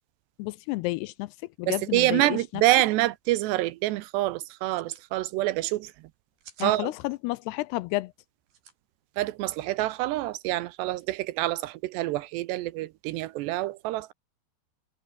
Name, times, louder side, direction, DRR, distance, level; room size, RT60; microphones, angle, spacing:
voice 1, 0.4-2.6 6.6-8.1, left 20 dB, 85° left, 2.4 m, -31 dB
voice 2, 1.7-5.9 6.6-6.9 9.2-14.1, right 17 dB, 80° right, 2.8 m, -26 dB
sound 1, 2.6-2.7 2.9-3.0 3.4-3.7 4.5-5.1 6.1-6.7 8.5-8.7, right 7 dB, 60° right, 5.6 m, -51 dB
omnidirectional pair, 5.2 m